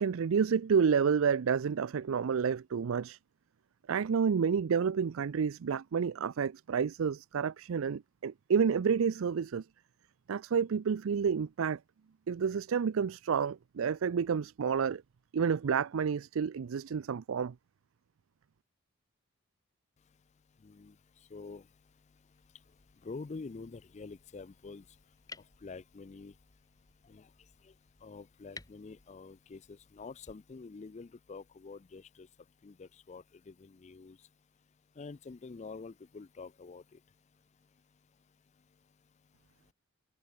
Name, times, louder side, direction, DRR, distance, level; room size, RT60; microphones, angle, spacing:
voice 1, 0.0-3.2 3.9-9.6 10.3-11.8 12.3-15.0 15.3-17.5, right 6 dB, 75° right, 0.4 m, -29 dB
voice 2, 20.6-20.9 21.3-21.6 23.0-24.8 25.6-26.3 27.1-27.3 28.0-32.3 32.6-34.2 35.0-36.8, left 4 dB, 35° left, 0.4 m, -46 dB
sound 1, 22.3-30.3, left 3 dB, 15° left, 5.0 m, -57 dB
head